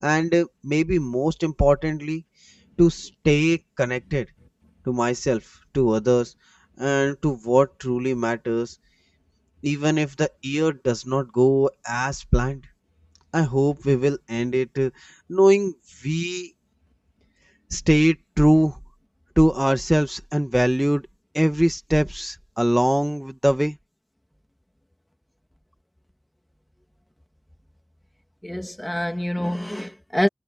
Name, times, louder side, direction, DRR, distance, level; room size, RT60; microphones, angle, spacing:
voice 1, 0.0-2.5 2.8-4.2 4.9-6.3 6.8-8.7 9.6-12.6 13.3-16.5 17.7-18.8 19.4-21.0 21.3-23.8, equal, 5° right, 1.7 m, -21 dB
voice 2, 28.4-30.3, left 1 dB, 10° left, 2.2 m, -26 dB
wide cardioid pair, 55°, 0 cm